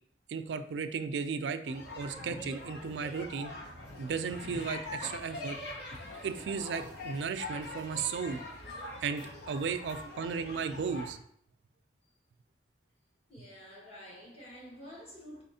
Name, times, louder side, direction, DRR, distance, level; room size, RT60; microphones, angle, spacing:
voice 1, 0.3-3.5 4.0-5.6 6.2-8.4 9.0-11.2, right 5 dB, 85° right, 0.4 m, -35 dB
sound 1, 1.6-11.1, left 1 dB, 70° left, 0.9 m, -43 dB
voice 2, 13.3-15.4, equal, 35° left, 1.4 m, -49 dB
4.1 x 4.0 x 2.7 m
head